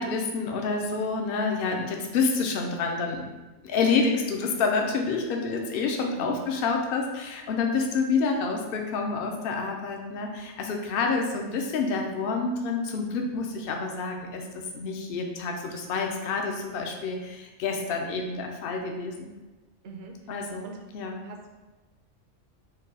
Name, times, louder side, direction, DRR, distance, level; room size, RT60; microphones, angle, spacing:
voice 1, 0.0-3.2 3.6-19.3 20.3-20.7 20.9-21.2, left 4 dB, 55° left, 2 dB, 0.7 m, -28 dB
voice 2, 19.8-20.3 20.6-20.8 21.2-21.5, right 4 dB, 60° right, 2 dB, 0.9 m, -43 dB
4.6 x 2.3 x 4.7 m, 1.2 s
omnidirectional pair, 1.3 m